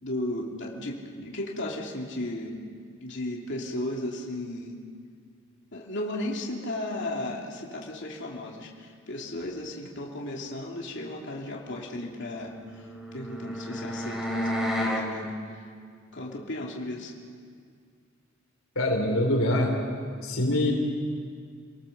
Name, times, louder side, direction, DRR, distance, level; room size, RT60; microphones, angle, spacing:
voice 1, 0.0-2.6 3.0-4.8 5.7-12.9 13.1-15.4 16.1-17.1, left 1 dB, 60° left, -1 dB, 2.9 m, -35 dB
sound 1, 12.5-15.1, left 1 dB, 5° right, 3.0 m, -31 dB
voice 2, 18.8-19.8 20.2-20.7, left 1 dB, 75° left, 1 dB, 3.8 m, -24 dB
28.5 x 18.5 x 7.2 m, 2.1 s
head